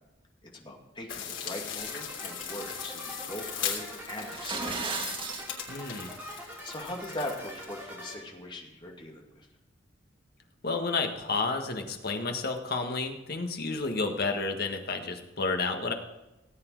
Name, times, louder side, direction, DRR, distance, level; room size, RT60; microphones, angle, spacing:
voice 1, 0.4-4.7 6.6-9.5, left 1 dB, 25° left, 0 dB, 2.4 m, -40 dB
sound 1, 1.1-7.7, left 8 dB, 90° left, 3.3 m, -39 dB
sound 2, 1.8-8.1, equal, 10° right, 4.9 m, -44 dB
sound 3, 4.2-5.5, right 4 dB, 25° right, 1.5 m, -34 dB
voice 2, 5.7-6.1 10.6-15.9, left 3 dB, 55° left, 4 dB, 1.7 m, -31 dB
18.0 x 8.9 x 4.8 m, 1.0 s
head